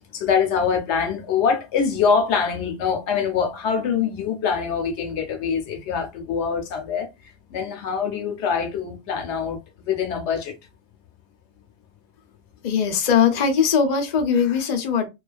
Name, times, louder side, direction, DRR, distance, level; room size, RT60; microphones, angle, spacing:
voice 1, 0.1-7.1 7.5-10.6, left 6 dB, 75° left, 0.9 m, -24 dB
voice 2, 12.6-15.1, left 7 dB, 50° left, 0.6 m, -20 dB
2.3 x 2.3 x 2.3 m
omnidirectional pair, 1.2 m